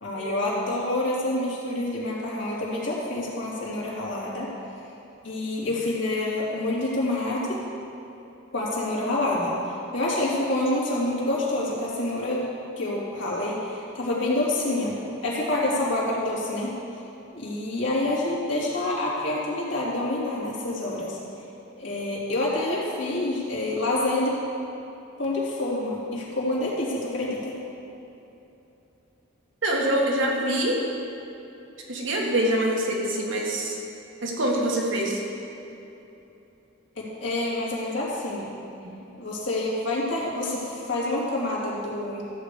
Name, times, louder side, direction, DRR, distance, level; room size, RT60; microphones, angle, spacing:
voice 1, 0.0-4.5 5.2-7.6 8.5-9.5 9.9-12.4 12.8-14.9 15.2-16.8 17.3-21.2 21.8-24.4 25.2-27.6 37.0-38.5 39.2-42.2, left 1 dB, 70° left, -5 dB, 2.9 m, -27 dB
voice 2, 29.6-30.8 31.9-33.8 34.2-35.2 38.8-39.0, right 1 dB, 75° right, -2 dB, 2.0 m, -25 dB
14.0 x 5.1 x 8.4 m, 3.0 s
head